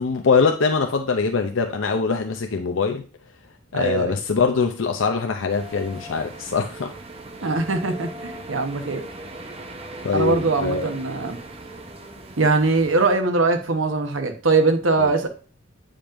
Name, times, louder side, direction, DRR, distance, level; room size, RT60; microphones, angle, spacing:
voice 1, 0.0-3.0 3.7-6.9 10.0-10.9 15.0-15.1, left 5 dB, 75° left, 5 dB, 0.6 m, -23 dB
voice 2, 3.7-4.2 7.4-9.0 10.1-11.4 12.4-15.3, right 3 dB, 85° right, 5 dB, 1.1 m, -21 dB
sound 1, 5.5-13.1, right 2 dB, 30° right, 0.8 m, -39 dB
8.8 x 5.1 x 2.6 m, 0.37 s
head